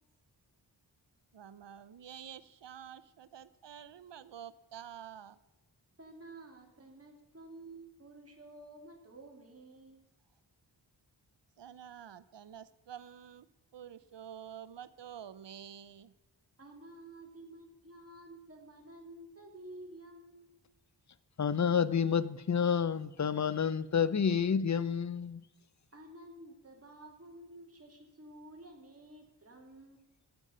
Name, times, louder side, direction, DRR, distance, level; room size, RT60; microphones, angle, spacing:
voice 1, 1.3-5.4 11.6-13.5 13.7-16.1, right 9 dB, 70° right, 16 dB, 0.7 m, -49 dB
voice 2, 6.0-10.0 16.6-20.6 25.9-30.0, right 1 dB, 30° right, 1 dB, 2.5 m, -52 dB
voice 3, 21.4-25.4, left 7 dB, 40° left, 17 dB, 0.7 m, -29 dB
12.0 x 8.2 x 5.6 m, 1.0 s
cardioid pair, 55°, 44 cm